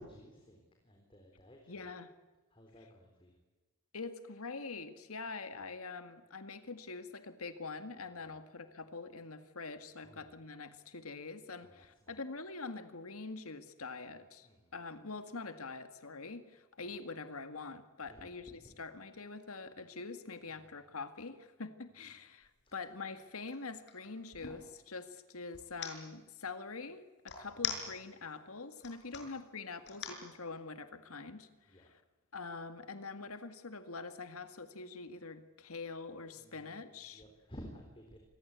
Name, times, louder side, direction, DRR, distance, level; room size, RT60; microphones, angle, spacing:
voice 1, 0.0-1.9 2.5-3.3 8.2-8.4 10.0-10.2 11.6-12.2 14.1-14.2 14.4-14.7 18.1-18.3 18.6-18.7 20.5-20.6 22.6-22.7 27.4-27.6 29.2-29.3 31.7-31.9 36.3-38.2, equal, 25° left, 3 dB, 3.8 m, -55 dB
voice 2, 1.7-2.1 3.9-32.0 32.3-37.2, left 4 dB, 85° left, 10 dB, 2.0 m, -45 dB
sound 1, 22.4-22.6 23.0-24.6 25.5-25.9 27.3-28.3 28.7-29.2 29.9-30.2, left 9 dB, 55° left, 6.1 m, -40 dB
27.0 x 21.0 x 8.3 m, 1.2 s
head